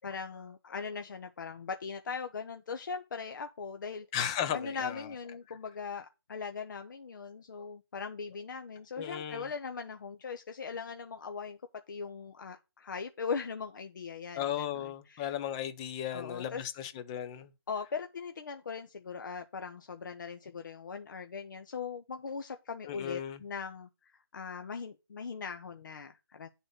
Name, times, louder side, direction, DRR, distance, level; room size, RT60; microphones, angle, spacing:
voice 1, 0.0-4.1 4.5-11.6 11.9-15.3 16.1-16.7 17.7-23.9 24.3-26.5, left 5 dB, 50° left, 0.9 m, -40 dB
voice 2, 4.1-5.1 9.0-9.5 14.4-17.5 22.9-23.4, left 10 dB, 15° left, 0.6 m, -35 dB
9.7 x 4.1 x 6.5 m
hypercardioid pair, 165°, 13 cm